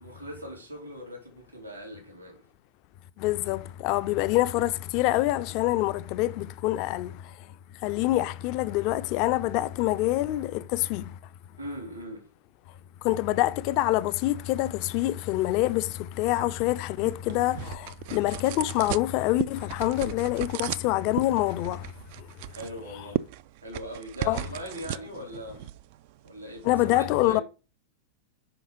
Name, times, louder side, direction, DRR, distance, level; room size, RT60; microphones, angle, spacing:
voice 1, 0.0-2.4 11.6-12.3 22.5-23.3 23.6-25.6 26.2-27.4, equal, 90° right, 3.6 m, -40 dB
voice 2, 3.2-7.5 7.8-11.2 13.0-21.9 22.2-22.3 24.3-24.4 26.6-27.4, left 16 dB, 45° left, 0.5 m, -26 dB
sound 1, 16.5-26.7, right 15 dB, 50° right, 0.3 m, -37 dB
5.8 x 5.3 x 5.2 m
figure-of-eight pair, 90°, 0 cm